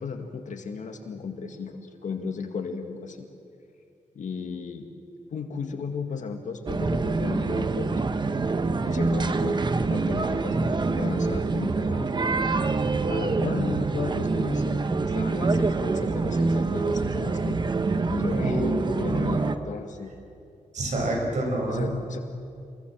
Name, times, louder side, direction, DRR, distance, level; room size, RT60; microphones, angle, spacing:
voice 1, 0.0-3.3 4.1-4.9 5.3-8.0 8.8-12.1 13.0-17.6 18.1-18.6 19.0-20.1 21.7-22.2, left 5 dB, 70° left, 5 dB, 2.1 m, -35 dB
sound 1, 6.7-19.6, right 3 dB, 35° right, 1.0 m, -26 dB
voice 2, 18.3-19.5 20.7-21.9, right 1 dB, 65° right, 1 dB, 6.3 m, -28 dB
27.5 x 22.5 x 7.5 m, 2.5 s
wide cardioid pair, 130°, 13 cm